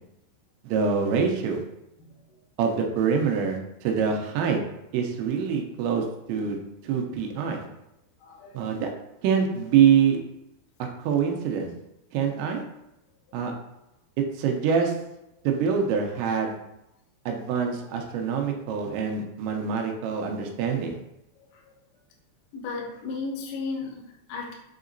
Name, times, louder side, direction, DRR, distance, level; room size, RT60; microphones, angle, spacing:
voice 1, 0.6-1.6 2.6-4.6 4.9-6.6 6.8-7.6 8.5-8.9 9.2-10.2 11.0-11.7 12.1-12.6 13.3-13.5 14.4-14.9 15.4-16.6 17.3-21.0, right 7 dB, 85° right, 2 dB, 2.9 m, -25 dB
voice 2, 2.0-2.4 8.2-8.6 13.3-13.4 21.4-21.7 22.5-24.5, left 4 dB, 85° left, -2 dB, 2.0 m, -36 dB
7.2 x 2.8 x 2.6 m, 0.86 s
omnidirectional pair, 5.2 m